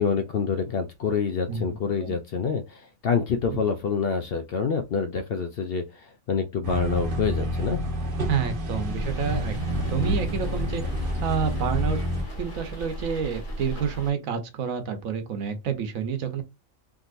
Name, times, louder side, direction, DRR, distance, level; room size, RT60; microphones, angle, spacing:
voice 1, 0.0-7.8, left 6 dB, 60° left, 0.6 m, -27 dB
voice 2, 1.5-2.2 3.5-3.6 8.3-9.6 9.9-10.8 11.2-12.0 12.4-16.4, right 7 dB, 80° right, 1.2 m, -29 dB
sound 1, 6.6-12.2, equal, 45° right, 0.9 m, -28 dB
sound 2, 8.8-14.1, right 1 dB, 40° left, 1.3 m, -36 dB
3.6 x 2.8 x 2.5 m
omnidirectional pair, 1.4 m